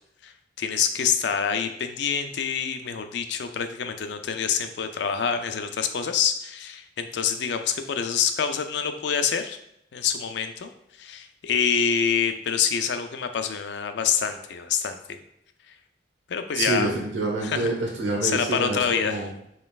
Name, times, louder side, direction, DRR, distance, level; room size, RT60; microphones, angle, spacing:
voice 1, 0.6-9.6 9.9-10.7 11.0-15.2 16.3-16.9 17.4-17.7 18.2-19.3, left 7 dB, 65° left, 8 dB, 0.4 m, -26 dB
voice 2, 16.6-19.3, right 2 dB, 90° right, 0 dB, 1.0 m, -27 dB
5.2 x 3.1 x 2.3 m, 0.77 s
head